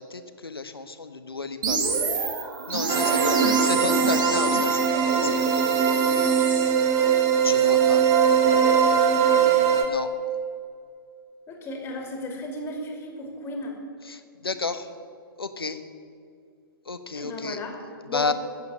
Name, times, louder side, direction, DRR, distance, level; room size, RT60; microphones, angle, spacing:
voice 1, 0.0-1.8 2.7-3.4 3.6-6.4 7.4-8.0 9.8-10.1 14.1-14.9 15.4-15.8 16.9-17.6 18.1-18.3, left 4 dB, 75° left, 10 dB, 1.1 m, -32 dB
sound 1, 1.6-6.7, right 4 dB, 55° right, 2.1 m, -28 dB
voice 2, 2.8-3.5 9.1-9.4 11.5-13.8 17.1-18.3, left 1 dB, 20° left, 2 dB, 2.6 m, -35 dB
sound 2, 2.9-9.8, right 7 dB, 25° right, 1.4 m, -21 dB
14.0 x 8.1 x 8.6 m, 2.3 s
figure-of-eight pair, 115°, 12 cm